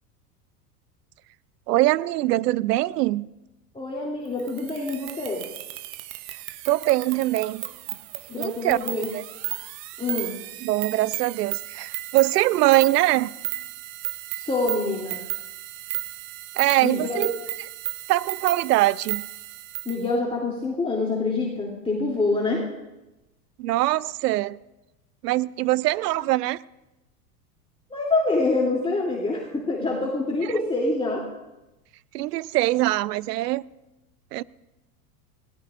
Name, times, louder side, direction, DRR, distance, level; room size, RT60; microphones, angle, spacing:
voice 1, 1.7-3.3 6.7-7.7 8.4-8.8 9.1-9.2 10.6-13.3 16.6-17.3 18.1-19.2 23.6-24.6 25.2-26.6 30.4-30.5 32.1-33.6 34.3-34.4, right 17 dB, 80° right, 0.6 m, -22 dB
voice 2, 3.7-5.4 8.3-9.1 10.0-10.3 14.3-15.2 16.8-17.3 19.8-22.6 27.9-31.2, left 3 dB, 10° left, 2.9 m, -26 dB
sound 1, 4.4-20.0, right 17 dB, 50° right, 0.8 m, -34 dB
20.0 x 17.0 x 2.5 m
hypercardioid pair, 95°, 47 cm